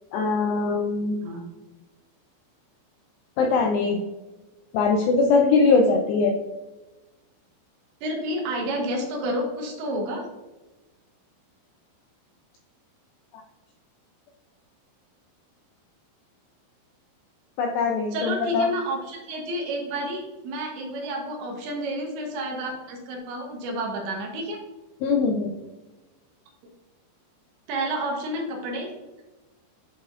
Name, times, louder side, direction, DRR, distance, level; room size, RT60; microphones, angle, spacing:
voice 1, 0.1-1.2 3.4-4.0 4.7-6.4 17.6-18.7 25.0-25.5, left 4 dB, 90° left, 1 dB, 2.4 m, -21 dB
voice 2, 8.0-10.3 18.1-24.6 27.7-28.9, right 1 dB, 75° right, 0 dB, 3.2 m, -30 dB
11.0 x 4.1 x 2.5 m, 1.1 s
omnidirectional pair, 5.5 m